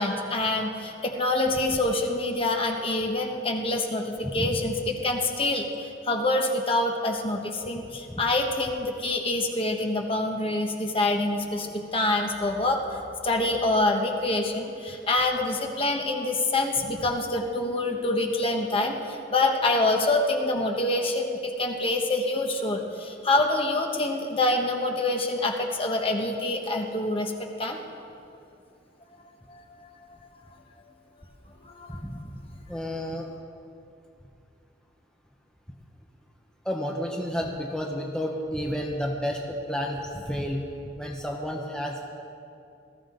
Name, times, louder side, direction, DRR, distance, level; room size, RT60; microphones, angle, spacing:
voice 1, 0.0-27.3 27.6-27.8 29.5-30.2 31.6-32.0, left 2 dB, 30° left, 2 dB, 1.2 m, -26 dB
voice 2, 4.2-4.6 8.1-8.2 32.0-32.2 32.7-33.3 36.6-39.4 39.7-40.6 41.0-42.1, equal, 5° left, -1 dB, 0.9 m, -31 dB
20.0 x 14.0 x 3.9 m, 2.6 s
head